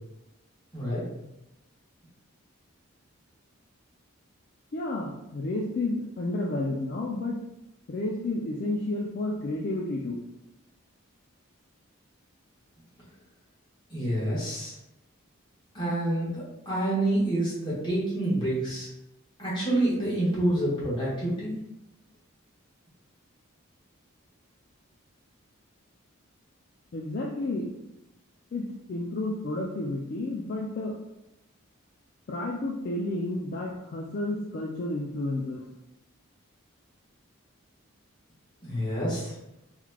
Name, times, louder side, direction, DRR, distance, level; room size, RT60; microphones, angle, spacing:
voice 1, 0.7-1.0 13.9-14.7 15.7-18.9 19.4-21.6 38.6-39.3, right 1 dB, 20° left, -8 dB, 1.4 m, -28 dB
voice 2, 4.7-7.4 7.9-10.2 26.9-27.7 28.5-31.0 32.3-35.7, left 2 dB, 45° left, -2 dB, 0.3 m, -31 dB
3.8 x 3.0 x 2.2 m, 0.90 s
head